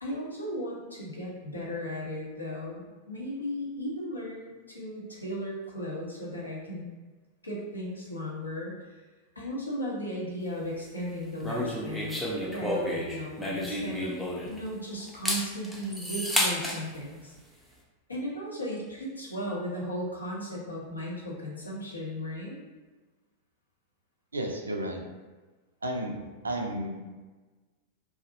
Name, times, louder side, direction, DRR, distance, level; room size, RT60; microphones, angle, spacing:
voice 1, 0.0-6.8 7.4-8.8 9.4-14.2 14.4-17.3 18.1-22.6, equal, 80° left, -4 dB, 0.6 m, -36 dB
sound 1, 11.4-14.7 15.1-16.8, equal, 5° left, 0.4 m, -31 dB
voice 2, 24.3-25.0 25.8-26.1 26.4-27.0, right 1 dB, 75° right, 1 dB, 0.3 m, -32 dB
2.4 x 2.0 x 2.6 m, 1.3 s
figure-of-eight pair, 90°, 0 cm